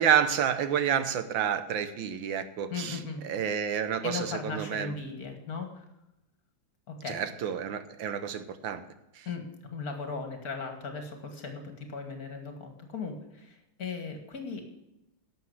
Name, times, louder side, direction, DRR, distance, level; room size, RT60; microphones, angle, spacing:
voice 1, 0.0-3.0 3.2-4.9 7.1-8.8 9.1-9.3, right 8 dB, 75° right, 11 dB, 1.6 m, -29 dB
voice 2, 2.7-3.2 4.0-5.8 6.9-7.2 9.3-14.8, left 4 dB, 50° left, 6 dB, 2.2 m, -37 dB
11.5 x 7.6 x 8.0 m, 0.90 s
omnidirectional pair, 2.2 m